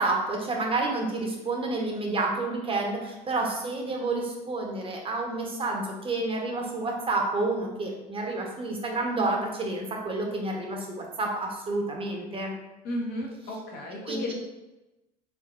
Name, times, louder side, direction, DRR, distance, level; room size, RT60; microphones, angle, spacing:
voice 1, 0.0-12.5 14.1-14.3, right 2 dB, 30° right, 0 dB, 0.8 m, -29 dB
voice 2, 12.8-14.3, left 1 dB, 55° left, -1 dB, 1.0 m, -34 dB
3.6 x 3.6 x 2.4 m, 1.0 s
hypercardioid pair, 75°, 20 cm